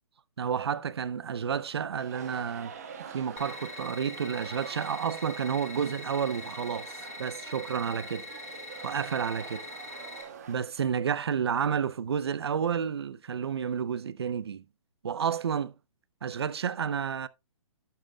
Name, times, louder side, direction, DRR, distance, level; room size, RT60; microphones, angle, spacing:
voice 1, 0.4-2.7 3.1-8.3 8.8-9.7 10.5-14.6 15.0-15.7 16.2-17.3, right 7 dB, 50° right, 0.6 m, -30 dB
sound 1, 2.0-10.5, right 7 dB, 30° right, 1.4 m, -45 dB
sound 2, 3.4-10.2, left 3 dB, 30° left, 1.9 m, -43 dB
11.5 x 9.0 x 2.3 m
hypercardioid pair, 180°, 17 cm